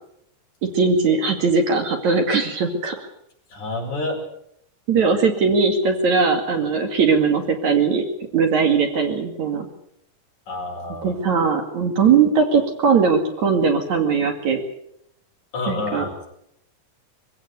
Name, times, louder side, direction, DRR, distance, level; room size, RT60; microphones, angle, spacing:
voice 1, 0.6-3.1 4.9-8.0 8.3-9.7 11.0-14.6 15.7-16.1, right 5 dB, 55° right, 4 dB, 3.5 m, -19 dB
voice 2, 3.5-4.2 10.5-11.2 15.5-16.3, left 2 dB, 55° left, 0 dB, 6.5 m, -28 dB
23.5 x 16.0 x 8.1 m, 0.75 s
omnidirectional pair, 4.1 m